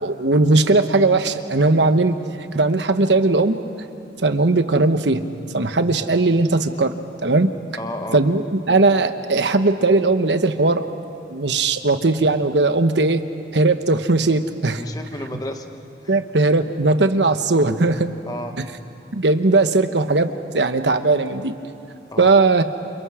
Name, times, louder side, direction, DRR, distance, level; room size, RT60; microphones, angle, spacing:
voice 1, 0.0-2.2 2.5-3.6 4.2-5.2 5.5-6.9 7.2-7.5 8.1-10.9 11.3-13.2 13.5-14.8 16.1-18.1 19.1-20.3 20.5-21.6 22.2-22.6, right 3 dB, 80° right, 9 dB, 1.1 m, -18 dB
voice 2, 7.8-8.2 14.7-15.7 16.0-16.2 18.3-18.6 22.1-22.3, left 1 dB, 20° left, 5 dB, 1.1 m, -32 dB
28.5 x 28.5 x 5.0 m, 2.7 s
head